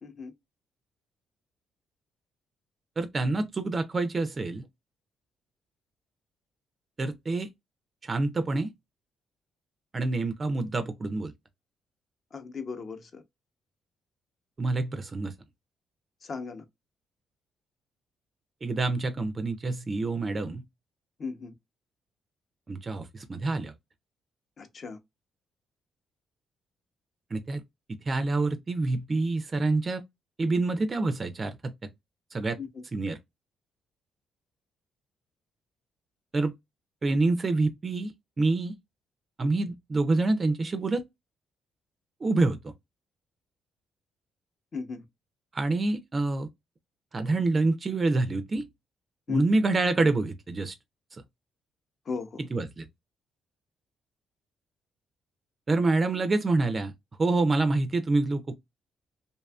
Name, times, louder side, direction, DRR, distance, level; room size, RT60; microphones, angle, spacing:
voice 1, 0.0-0.3 12.3-13.2 16.2-16.6 21.2-21.5 24.6-25.0 32.6-32.8 44.7-45.0 49.3-49.4 52.1-52.4, left 5 dB, 45° left, 0.6 m, -36 dB
voice 2, 3.0-4.6 7.0-7.5 8.0-8.7 9.9-11.3 14.6-15.3 18.6-20.6 22.7-23.7 27.3-27.6 28.1-30.0 30.4-31.7 32.3-32.6 32.9-33.2 36.3-36.5 37.0-38.1 38.4-38.7 39.4-41.0 42.2-42.7 45.5-46.5 47.1-48.6 49.3-50.7 51.1-51.2 52.5-52.9 55.7-56.9 57.2-58.6, right 3 dB, 35° right, 0.3 m, -27 dB
2.6 x 2.3 x 2.2 m
cardioid pair, 90°, 0 cm